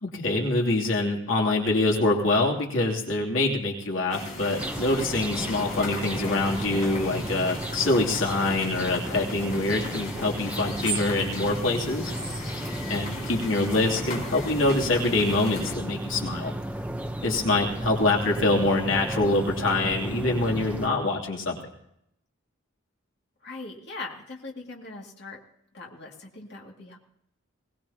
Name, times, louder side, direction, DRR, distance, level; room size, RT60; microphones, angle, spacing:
voice 1, 0.0-12.1 12.9-16.5 17.2-21.6, left 2 dB, 75° left, -1 dB, 2.9 m, -25 dB
sound 1, 4.1-15.8, left 2 dB, 40° left, 4.2 m, -38 dB
sound 2, 4.6-20.9, right 1 dB, 5° right, 0.8 m, -34 dB
voice 2, 23.4-25.4 25.7-27.0, left 3 dB, 55° left, -1 dB, 2.3 m, -40 dB
22.0 x 19.0 x 2.9 m, 0.75 s
head